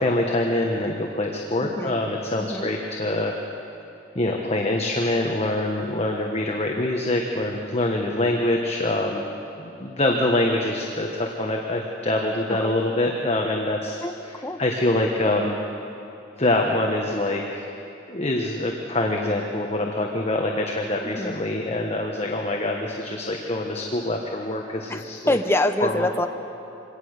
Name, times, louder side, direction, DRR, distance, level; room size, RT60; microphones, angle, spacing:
voice 1, 0.0-3.3 4.1-9.2 9.6-14.0 14.6-15.6 16.4-17.7 18.1-25.4 25.8-25.9, left 1 dB, 35° left, 1 dB, 1.4 m, -25 dB
voice 2, 1.6-2.0 2.4-2.7 12.5-12.7 14.0-14.1 14.4-14.6 21.0-21.3 24.9-26.3, left 1 dB, 15° left, 6 dB, 0.9 m, -25 dB
24.5 x 18.5 x 6.6 m, 2.8 s
head